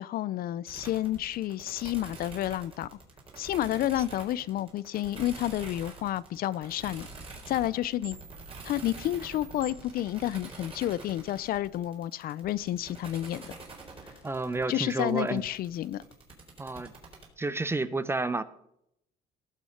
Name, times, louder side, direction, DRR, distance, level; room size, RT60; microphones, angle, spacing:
voice 1, 0.0-2.9 3.4-7.1 7.5-8.2 8.6-13.5 14.7-16.0, left 13 dB, 60° left, 19 dB, 0.5 m, -30 dB
sound 1, 0.7-17.3, right 3 dB, 35° right, 4.1 m, -46 dB
voice 2, 14.2-15.4 16.6-16.9 17.4-18.4, right 3 dB, 15° right, 15 dB, 0.7 m, -30 dB
18.0 x 6.2 x 5.8 m, 0.76 s
cardioid pair, 110°, 17 cm